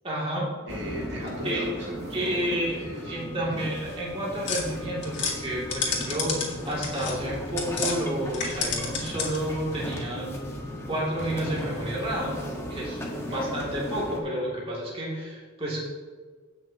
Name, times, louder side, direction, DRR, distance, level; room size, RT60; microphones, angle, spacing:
voice 1, 0.0-0.5 1.4-1.6 2.1-2.7 3.1-6.3 6.7-10.4 10.9-12.4 12.7-13.0 13.3-15.9, right 1 dB, 30° right, -5 dB, 2.4 m, -30 dB
voice 2, 0.6-3.6 13.3-13.6, left 1 dB, 65° right, -3 dB, 1.8 m, -38 dB
sound 1, 0.7-14.2, equal, 15° left, 1.3 m, -36 dB
sound 2, 4.4-8.0 8.3-9.5, left 5 dB, 60° left, 2.0 m, -31 dB
16.5 x 6.0 x 2.9 m, 1.5 s
head